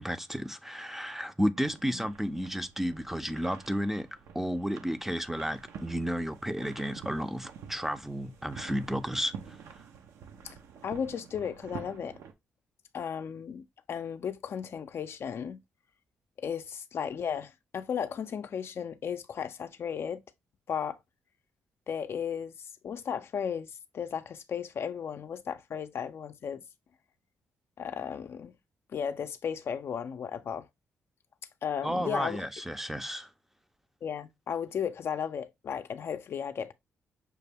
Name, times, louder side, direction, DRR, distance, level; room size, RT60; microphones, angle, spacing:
voice 1, 0.0-4.1 4.3-9.6 31.8-33.3, equal, 5° right, 0.5 m, -32 dB
sound 1, 1.5-12.3, right 7 dB, 80° right, 0.7 m, -48 dB
voice 2, 10.8-12.2 12.9-15.6 16.4-20.2 20.7-21.0 21.9-26.6 27.8-28.5 28.9-30.7 31.6-32.5 34.0-36.7, left 7 dB, 55° left, 0.4 m, -35 dB
5.9 x 2.2 x 3.3 m
cardioid pair, 75°, 5 cm